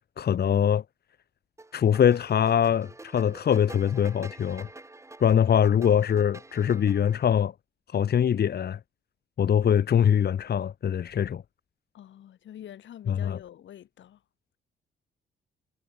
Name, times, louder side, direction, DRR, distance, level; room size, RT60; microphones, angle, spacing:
voice 1, 0.2-0.8 1.7-4.7 5.2-7.5 7.9-8.8 9.4-11.4 13.1-13.4, left 8 dB, 55° left, 1.8 m, -23 dB
sound 1, 1.6-7.2, right 2 dB, 15° right, 3.0 m, -47 dB
voice 2, 11.9-14.2, left 11 dB, 70° left, 5.8 m, -46 dB
cardioid pair, 90°, 20 cm